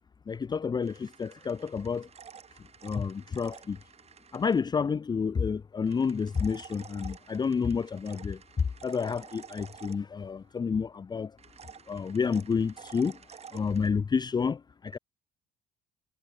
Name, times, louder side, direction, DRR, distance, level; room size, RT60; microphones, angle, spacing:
voice 1, 0.3-2.1 2.8-3.8 4.3-11.3 11.9-13.2 13.5-15.0, left 5 dB, 25° left, 0.7 m, -30 dB
sound 1, 0.8-4.6 5.9-10.5 11.4-13.9, right 7 dB, 40° right, 5.0 m, -51 dB
cardioid pair, 110°, 17 cm